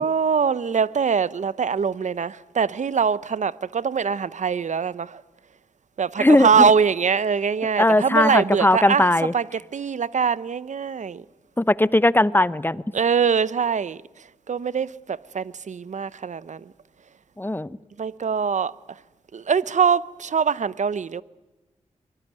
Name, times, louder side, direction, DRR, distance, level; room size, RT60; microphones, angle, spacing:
voice 1, 0.0-5.2 6.0-9.1 9.3-11.2 12.9-14.0 14.5-16.6 18.0-18.7 19.3-21.2, right 6 dB, 65° right, 0.8 m, -23 dB
voice 2, 6.2-6.7 7.8-9.3 11.6-12.8 17.4-17.8, left 1 dB, 15° left, 0.8 m, -19 dB
24.5 x 19.5 x 9.3 m
cardioid pair, 40°, 14 cm